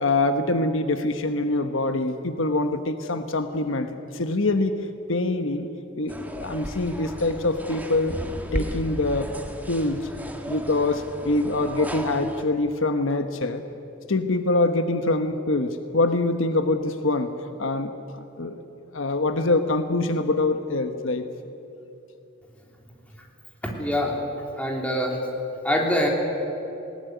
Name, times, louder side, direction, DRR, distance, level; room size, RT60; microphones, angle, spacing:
voice 1, 0.0-4.8 5.1-5.7 6.0-8.2 8.5-9.3 9.7-10.1 10.5-13.6 14.1-17.3 17.6-18.6 18.9-21.3, left 2 dB, 75° left, 8 dB, 1.2 m, -24 dB
sound 1, 6.1-12.4, equal, 10° right, 1.6 m, -34 dB
voice 2, 23.6-24.1 24.6-25.2 25.6-26.1, left 1 dB, 5° left, 0 dB, 3.4 m, -24 dB
20.0 x 19.0 x 9.3 m, 2.9 s
head